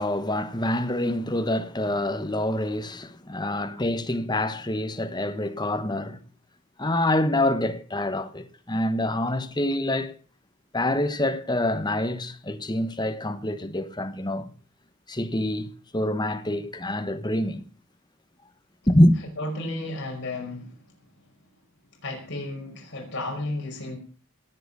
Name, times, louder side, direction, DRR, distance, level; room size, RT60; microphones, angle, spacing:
voice 1, 0.0-6.2 6.8-10.1 10.7-14.5 15.1-17.6 18.9-19.2, left 1 dB, 20° left, 1.3 m, -26 dB
voice 2, 19.4-20.9 22.0-24.0, left 2 dB, 55° left, 5.2 m, -33 dB
19.0 x 7.8 x 6.9 m
head